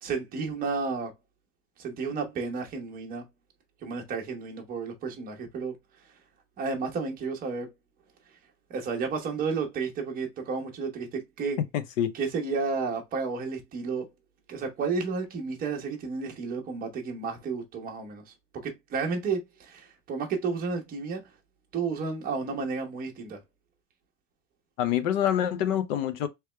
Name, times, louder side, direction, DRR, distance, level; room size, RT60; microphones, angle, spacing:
voice 1, 0.0-1.1 1.8-3.3 3.8-5.8 6.6-7.7 8.7-11.6 12.1-14.1 14.5-18.3 18.6-21.2 21.7-23.4, right 4 dB, 20° right, 0.9 m, -32 dB
voice 2, 11.7-12.1 24.8-26.3, left 10 dB, 80° left, 0.9 m, -26 dB
3.3 x 3.1 x 3.2 m
supercardioid pair, 165°, 39 cm